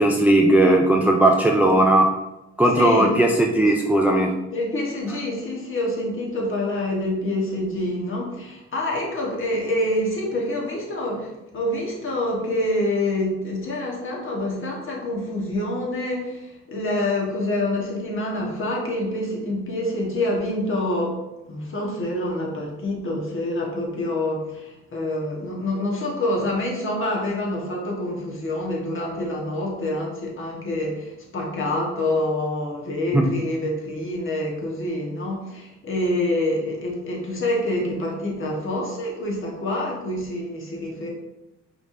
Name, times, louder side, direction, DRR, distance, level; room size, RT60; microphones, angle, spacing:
voice 1, 0.0-2.1 2.6-4.3 33.1-33.3, right 1 dB, 5° right, 1 dB, 0.3 m, -17 dB
voice 2, 2.7-3.1 4.5-21.2 21.5-41.1, left 1 dB, 45° left, -1 dB, 1.3 m, -26 dB
4.9 x 3.3 x 2.6 m, 0.98 s
cardioid pair, 90°, 30 cm